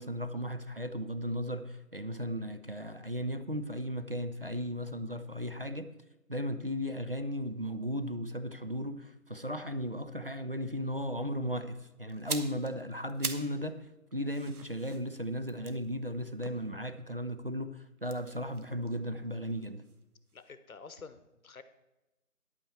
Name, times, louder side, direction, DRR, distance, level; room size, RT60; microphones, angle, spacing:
voice 1, 0.0-5.9 6.3-13.9 14.1-19.8, equal, 40° right, 0.5 m, -36 dB
sound 1, 12.1-13.6 13.9-17.2 18.0-20.0 20.3-20.5, right 4 dB, 85° right, 1.2 m, -43 dB
voice 2, 20.3-21.6, left 5 dB, 70° left, 1.0 m, -49 dB
10.0 x 8.5 x 4.4 m
figure-of-eight pair, 170°, 43 cm